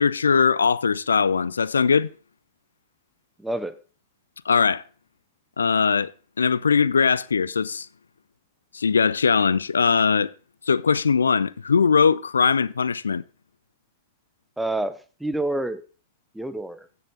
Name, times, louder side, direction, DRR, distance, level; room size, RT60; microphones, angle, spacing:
voice 1, 0.0-2.1 4.5-4.8 5.6-6.1 6.4-7.9 8.7-10.3 10.7-13.2, left 5 dB, 75° left, 0.4 m, -20 dB
voice 2, 3.4-3.8 14.6-15.8 16.3-16.9, right 1 dB, 5° right, 0.8 m, -28 dB
15.5 x 5.6 x 3.8 m
figure-of-eight pair, 90°, 0 cm